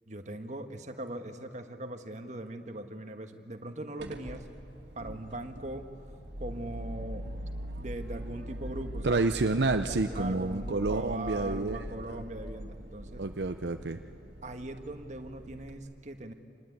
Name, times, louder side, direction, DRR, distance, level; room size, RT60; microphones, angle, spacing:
voice 1, 0.1-4.5 4.9-5.9 6.4-7.3 7.8-9.4 9.8-13.3 14.4-16.3, right 1 dB, 40° right, 6 dB, 1.5 m, -40 dB
sound 1, 4.0-15.8, right 1 dB, 85° right, 2.2 m, -42 dB
voice 2, 9.0-12.2 13.2-14.0, right 3 dB, 70° right, 8 dB, 0.7 m, -29 dB
26.5 x 20.0 x 9.4 m, 2.5 s
head